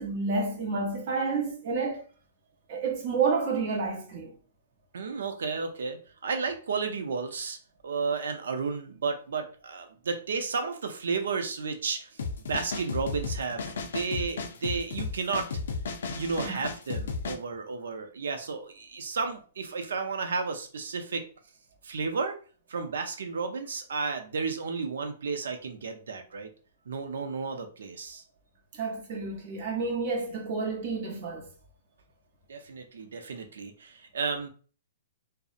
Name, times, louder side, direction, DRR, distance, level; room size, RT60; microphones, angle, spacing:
voice 1, 0.0-2.0 2.7-4.3 16.4-16.6 28.8-31.5, right 4 dB, 45° right, 0.7 m, -30 dB
voice 2, 4.9-7.6 7.8-12.2 12.5-15.5 16.1-21.2 21.8-22.4 22.7-26.5 26.9-28.2 32.5-34.5, right 4 dB, 85° right, 0.5 m, -32 dB
sound 1, 12.2-17.3, left 4 dB, 80° left, 0.4 m, -34 dB
2.6 x 2.0 x 2.4 m
hypercardioid pair, 160°, 0 cm